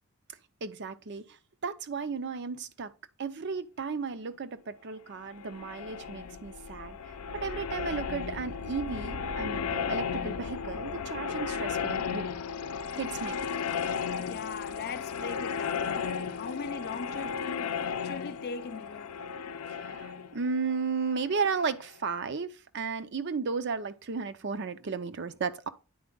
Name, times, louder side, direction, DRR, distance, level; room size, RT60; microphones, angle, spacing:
voice 1, 0.6-1.4 1.6-2.9 3.2-7.0 7.3-12.3 13.0-13.4 19.7-25.7, right 5 dB, 50° right, 0.5 m, -34 dB
sound 1, 5.2-21.9, left 6 dB, 90° left, 0.6 m, -35 dB
voice 2, 14.3-19.1, left 5 dB, 45° left, 0.4 m, -40 dB
9.4 x 4.3 x 3.8 m
head